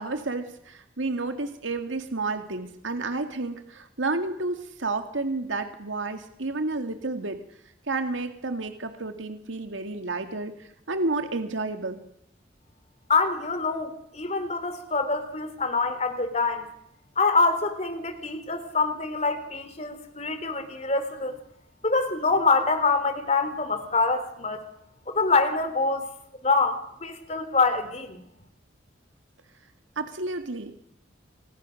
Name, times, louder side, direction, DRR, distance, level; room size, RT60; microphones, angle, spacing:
voice 1, 0.0-7.4 7.9-12.0 30.0-30.8, right 3 dB, 90° right, 7 dB, 2.1 m, -31 dB
voice 2, 13.1-16.7 17.2-21.4 21.8-24.6 25.1-26.1 26.4-28.2, left 3 dB, 35° left, 10 dB, 3.3 m, -25 dB
29.0 x 26.0 x 6.4 m, 0.76 s
head